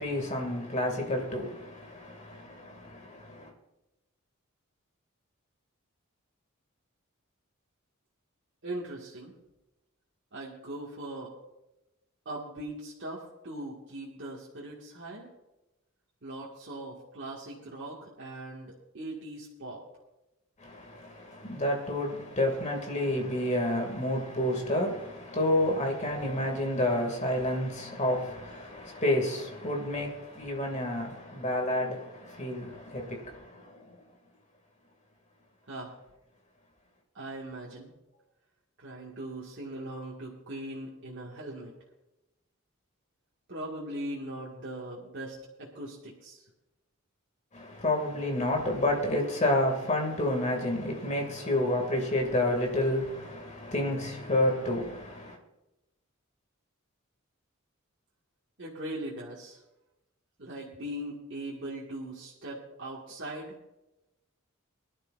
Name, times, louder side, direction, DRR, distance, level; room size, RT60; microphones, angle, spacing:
voice 1, 0.0-3.5 20.6-34.0 47.5-55.4, left 1 dB, 35° left, 2.4 m, -30 dB
voice 2, 8.6-9.3 10.3-11.3 12.3-15.3 16.2-19.8 35.7-35.9 37.1-37.9 38.8-41.7 43.5-46.4 58.6-59.6 60.4-63.6, right 1 dB, 60° right, 2.0 m, -40 dB
22.0 x 11.5 x 2.6 m
head